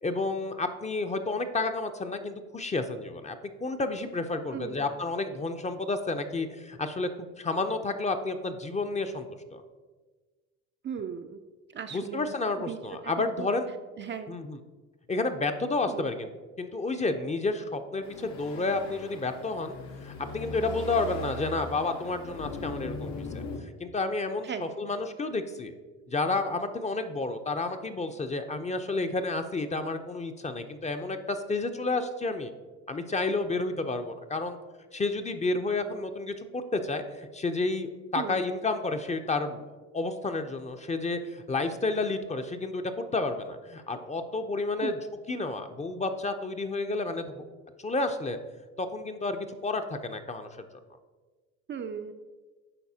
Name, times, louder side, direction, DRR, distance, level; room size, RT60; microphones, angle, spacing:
voice 1, 0.0-7.1 7.4-9.6 11.9-13.7 14.3-14.6 15.1-16.3 16.6-19.8 20.0-23.4 23.8-25.7 26.1-32.5 32.9-34.6 34.9-39.6 39.9-45.0 45.3-47.4 47.8-48.4 48.8-50.5, left 3 dB, 20° left, 7 dB, 0.6 m, -31 dB
voice 2, 4.5-4.9 10.8-11.4 11.7-12.8 13.0-13.5 14.0-14.3 15.9-16.1 24.4-24.7 38.2-38.5 44.8-44.9 51.7-52.1, right 7 dB, 35° right, 7 dB, 0.4 m, -37 dB
sound 1, 18.0-23.6, left 2 dB, 75° left, 1.0 m, -39 dB
11.0 x 4.1 x 2.8 m, 1.3 s
supercardioid pair, 75°, 34 cm